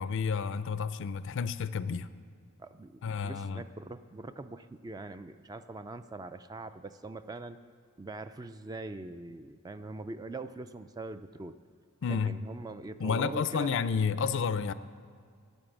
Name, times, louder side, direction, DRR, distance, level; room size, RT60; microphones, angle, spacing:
voice 1, 0.0-2.1 3.0-3.6 12.0-12.3 13.0-14.7, left 6 dB, 60° left, 15 dB, 0.4 m, -30 dB
voice 2, 2.6-7.6 8.0-11.6 12.1-13.8, right 2 dB, 15° right, 11 dB, 0.3 m, -42 dB
12.5 x 9.6 x 7.2 m, 2.1 s
head